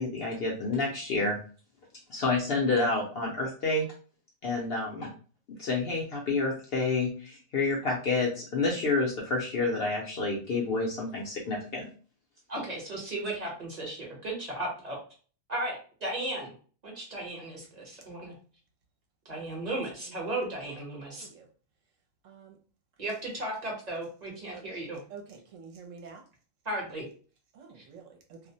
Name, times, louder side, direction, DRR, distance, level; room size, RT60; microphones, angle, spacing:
voice 1, 0.0-1.4 2.1-3.9 4.4-5.1 5.6-11.9, left 3 dB, 60° left, -2 dB, 0.6 m, -29 dB
voice 2, 12.5-15.0 15.5-16.5 16.8-18.3 19.2-21.3 23.0-25.0 26.6-27.1 27.7-27.8, right 1 dB, 35° right, -3 dB, 0.8 m, -35 dB
voice 3, 25.1-26.2 27.5-28.4, right 5 dB, 75° right, 2 dB, 0.9 m, -48 dB
2.4 x 2.0 x 2.6 m, 0.40 s
omnidirectional pair, 1.4 m